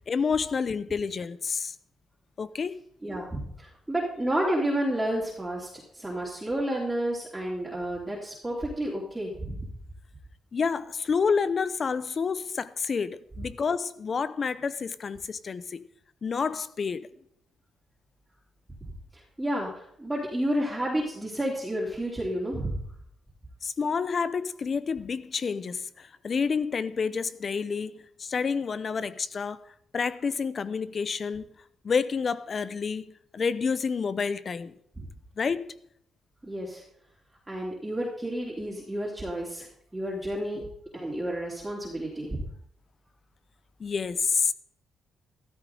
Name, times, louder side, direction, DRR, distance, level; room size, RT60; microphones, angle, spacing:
voice 1, 0.1-1.7 2.4-2.8 10.5-15.8 16.2-17.1 23.6-29.6 29.9-31.5 31.8-34.7 35.4-35.8 40.5-40.7 43.8-44.5, left 5 dB, 45° left, 0.7 m, -29 dB
voice 2, 3.0-9.7 19.1-22.8 35.0-35.1 36.4-36.8 37.5-39.7 39.9-40.7 40.9-42.4, right 1 dB, 10° right, 3.2 m, -31 dB
14.0 x 13.0 x 3.9 m
cardioid pair, 90°, 0 cm